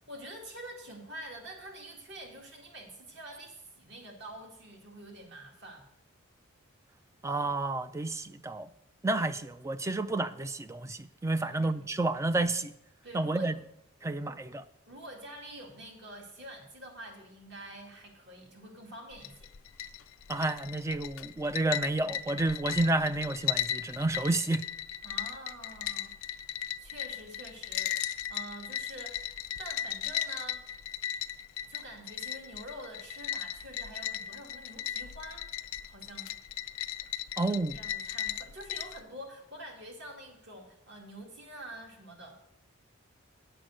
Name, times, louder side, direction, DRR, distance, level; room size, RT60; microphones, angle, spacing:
voice 1, 0.1-5.9 11.4-11.8 13.0-13.5 14.2-14.4 14.9-19.5 25.0-26.1 26.8-30.6 31.6-35.5 35.9-36.4 37.4-42.4, right 1 dB, 55° right, 1 dB, 2.3 m, -47 dB
voice 2, 7.2-8.7 9.0-12.7 13.1-13.5 14.0-14.6 20.3-24.6 37.4-37.8, right 2 dB, 15° right, 13 dB, 0.3 m, -30 dB
sound 1, 19.1-39.0, left 10 dB, 85° left, 0.5 m, -37 dB
8.8 x 7.7 x 6.4 m, 0.80 s
head